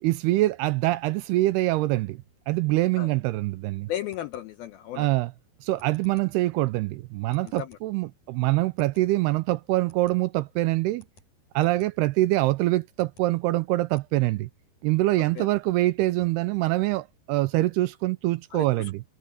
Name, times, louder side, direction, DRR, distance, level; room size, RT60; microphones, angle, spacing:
voice 1, 0.0-3.9 5.0-5.3 5.6-11.0 11.6-14.5 14.8-19.0, right 18 dB, 85° right, 2.4 m, -24 dB
sound 1, 3.5-14.1, left 2 dB, 40° left, 8.7 m, -61 dB
voice 2, 3.9-5.1 7.4-7.8 15.4-15.5 18.5-18.9, left 12 dB, 80° left, 2.2 m, -35 dB
omnidirectional pair, 5.2 m